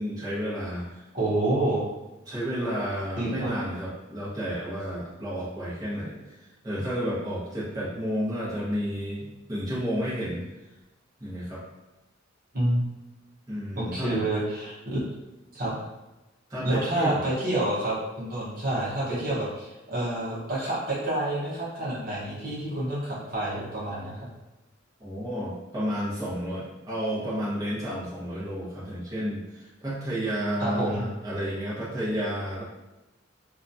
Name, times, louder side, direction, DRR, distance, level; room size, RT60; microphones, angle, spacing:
voice 1, 0.0-1.0 2.3-6.4 6.6-10.4 11.2-11.6 13.5-14.2 16.5-17.2 25.0-32.6, equal, 20° right, -11 dB, 0.9 m, -31 dB
voice 2, 1.1-1.8 3.2-3.5 12.5-12.8 13.8-15.0 15.5-15.8 16.6-24.3 30.6-31.0, right 1 dB, 50° right, -8 dB, 0.9 m, -28 dB
2.8 x 2.3 x 2.6 m, 1.0 s
head